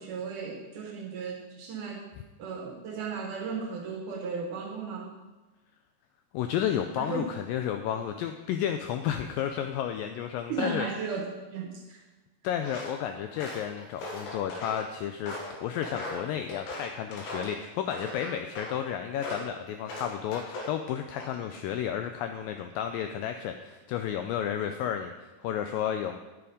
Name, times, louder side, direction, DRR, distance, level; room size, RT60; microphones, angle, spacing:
voice 1, 0.0-2.1 2.4-5.1 7.0-7.3 10.5-12.0, right 5 dB, 70° right, 2 dB, 2.0 m, -35 dB
voice 2, 6.3-10.9 12.4-15.4 15.6-26.2, left 9 dB, 85° left, 7 dB, 2.0 m, -32 dB
Walk footsteps, 12.6-13.0 13.3-14.8 15.3-17.6 17.9-18.8 19.2-19.5 19.9-20.8 21.1-21.6, left 1 dB, 70° left, 3.2 m, -39 dB
10.5 x 7.0 x 5.1 m, 1.1 s
omnidirectional pair, 4.5 m